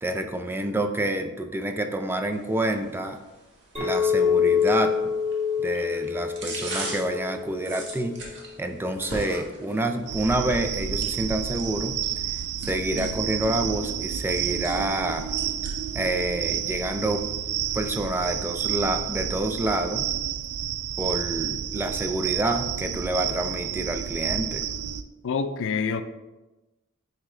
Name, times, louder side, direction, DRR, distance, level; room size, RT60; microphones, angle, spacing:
voice 1, 0.0-3.2 3.8-5.1 5.6-8.2 8.6-15.3 15.9-17.2 17.7-20.1 21.0-24.6, right 1 dB, 10° right, 0.4 m, -28 dB
sound 1, 2.3-18.3, right 2 dB, 55° right, 1.5 m, -42 dB
Chink clink, 3.8-8.2, left 7 dB, 25° right, 1.5 m, -26 dB
sound 2, 10.1-25.0, right 9 dB, 90° right, 0.4 m, -30 dB
voice 2, 25.2-26.0, left 5 dB, 60° left, 0.4 m, -26 dB
9.7 x 3.7 x 3.2 m
head